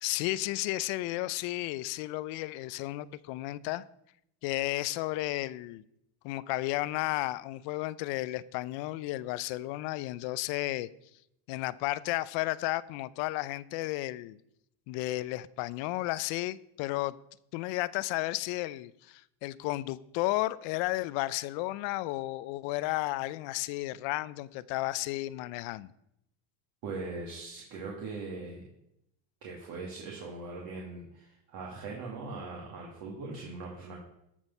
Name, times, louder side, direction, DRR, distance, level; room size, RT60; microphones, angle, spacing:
voice 1, 0.0-3.8 4.4-5.8 6.2-10.9 11.5-14.4 14.9-17.1 17.5-25.9, left 17 dB, 65° left, 0.6 m, -33 dB
voice 2, 26.8-28.7 29.4-34.0, right 3 dB, 50° right, 2.3 m, -40 dB
13.5 x 6.3 x 5.4 m
cardioid pair, 145°, 48 cm